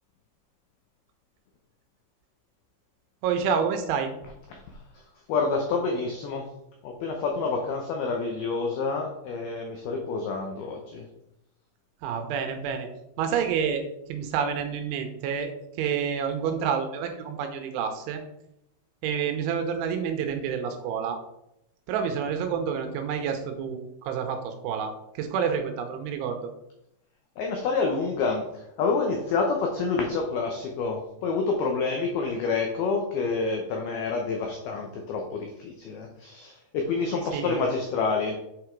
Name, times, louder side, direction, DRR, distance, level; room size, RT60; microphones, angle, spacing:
voice 1, 3.2-4.1 12.0-12.9 13.2-13.8 14.1-15.5 15.8-18.2 19.0-21.2 21.9-26.4 37.3-37.6, right 7 dB, 80° right, 6 dB, 3.1 m, -28 dB
voice 2, 5.3-6.5 6.8-11.0 27.4-28.4 28.8-38.4, left 4 dB, 85° left, 2 dB, 2.2 m, -28 dB
7.9 x 4.9 x 4.5 m, 0.83 s
omnidirectional pair, 5.7 m